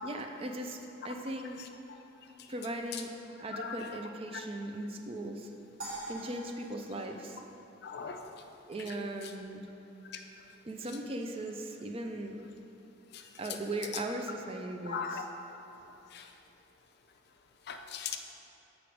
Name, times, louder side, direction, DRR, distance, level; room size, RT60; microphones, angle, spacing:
voice 1, 0.0-1.7 2.5-3.1 3.4-5.5 6.1-7.4 8.7-9.7 10.6-12.4 13.4-15.3, right 1 dB, 30° right, 4 dB, 0.4 m, -38 dB
sound 1, 5.8-8.2, right 1 dB, 85° right, 1.5 m, -45 dB
voice 2, 7.8-8.3 10.1-10.2 14.9-15.2 16.1-16.3 17.7-18.2, left 6 dB, 55° left, 5 dB, 0.4 m, -38 dB
6.4 x 5.0 x 4.6 m, 2.9 s
head